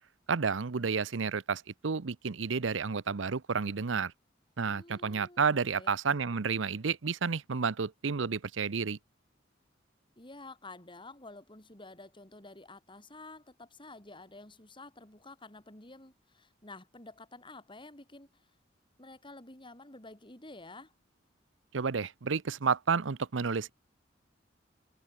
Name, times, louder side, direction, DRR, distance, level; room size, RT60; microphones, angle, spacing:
voice 1, 0.3-4.1 4.6-9.0 21.7-23.7, right 5 dB, 85° right, 0.7 m, -31 dB
voice 2, 4.7-5.4 5.7-5.9 10.2-18.4 19.0-20.9, left 2 dB, 25° left, 4.4 m, -50 dB
head